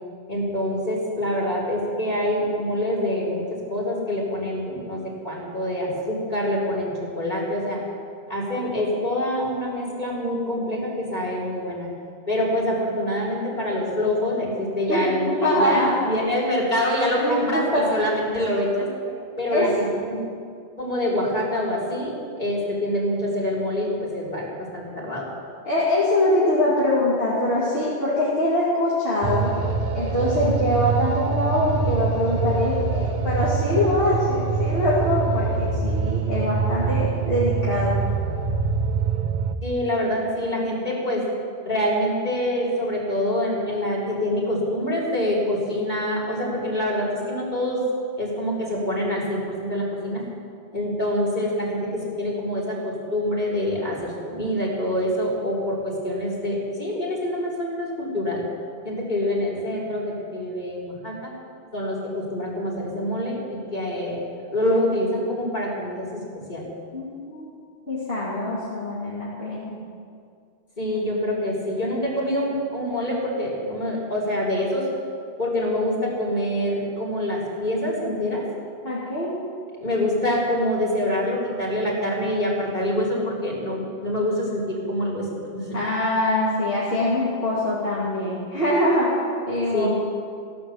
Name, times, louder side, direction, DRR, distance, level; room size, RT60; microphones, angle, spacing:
voice 1, 0.3-3.4 3.7-7.8 8.3-11.9 12.3-18.9 19.4-20.2 20.8-25.3 39.6-41.2 41.6-47.8 48.2-50.2 50.7-58.4 58.8-61.3 61.7-66.2 66.5-66.6 70.8-74.8 75.4-78.4 79.8-85.2 85.5-85.8 89.7-89.9, left 1 dB, 45° left, -5 dB, 4.0 m, -25 dB
voice 2, 14.9-16.0 17.2-17.8 19.5-19.7 25.6-29.5 29.9-38.0 66.9-67.5 67.9-69.8 78.8-79.4 85.7-89.1 89.5-89.9, left 1 dB, 65° left, -8 dB, 2.8 m, -23 dB
sound 1, 29.2-39.5, right 5 dB, 50° right, 0.8 m, -25 dB
16.0 x 11.0 x 7.1 m, 2.2 s
omnidirectional pair, 1.0 m